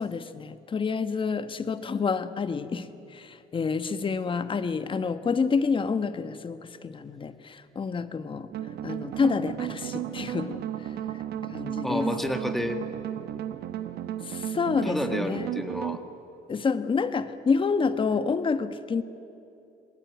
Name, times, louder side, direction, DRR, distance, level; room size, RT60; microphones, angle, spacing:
voice 1, 0.0-8.5 8.8-10.9 11.5-12.1 14.2-15.5 16.5-19.0, left 5 dB, 30° left, 11 dB, 1.2 m, -28 dB
sound 1, 8.5-16.0, right 11 dB, 70° right, 1.2 m, -34 dB
voice 2, 11.8-12.8 14.8-16.0, left 1 dB, ahead, 7 dB, 1.6 m, -30 dB
27.0 x 20.0 x 9.2 m, 2.8 s
cardioid pair, 110°, 17 cm